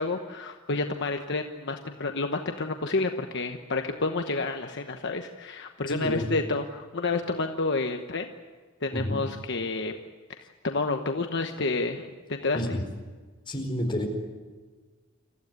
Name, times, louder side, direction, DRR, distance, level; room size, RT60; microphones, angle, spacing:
voice 1, 0.0-8.3 8.8-9.9 10.3-12.6, left 3 dB, 60° left, 5 dB, 1.1 m, -30 dB
voice 2, 5.9-6.3 8.9-9.2 12.5-12.8 13.5-14.1, left 1 dB, 25° left, 1 dB, 4.7 m, -29 dB
27.0 x 15.0 x 9.5 m, 1.4 s
head